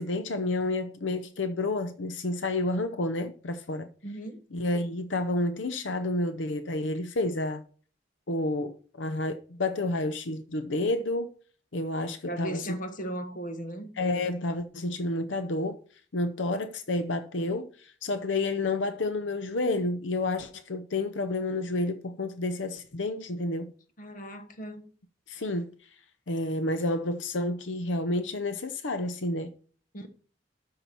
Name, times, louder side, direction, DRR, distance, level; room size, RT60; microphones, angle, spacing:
voice 1, 0.0-3.9 4.5-7.6 8.3-11.3 11.7-12.6 14.0-15.8 16.1-17.7 18.0-23.7 25.3-25.7 26.3-29.5, left 2 dB, 85° left, 0.7 m, -30 dB
voice 2, 4.0-4.4 12.2-13.9 24.0-24.9 29.9-30.1, right 1 dB, 45° left, 1.3 m, -37 dB
12.5 x 5.8 x 4.4 m
head